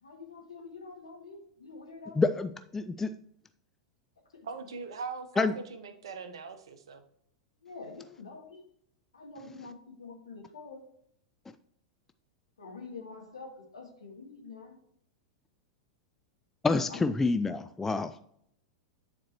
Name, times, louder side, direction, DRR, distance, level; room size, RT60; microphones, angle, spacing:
voice 1, 0.0-2.2 4.3-4.5 7.6-8.6 9.1-10.8 12.6-14.8 16.9-17.0, left 4 dB, 75° left, 1 dB, 1.8 m, -46 dB
voice 2, 2.2-3.1 5.4-5.5 16.6-18.2, left 3 dB, 10° left, 11 dB, 0.3 m, -28 dB
voice 3, 4.4-7.0, right 4 dB, 65° right, 8 dB, 0.9 m, -40 dB
9.6 x 4.4 x 3.0 m, 0.69 s
figure-of-eight pair, 90°, 3 cm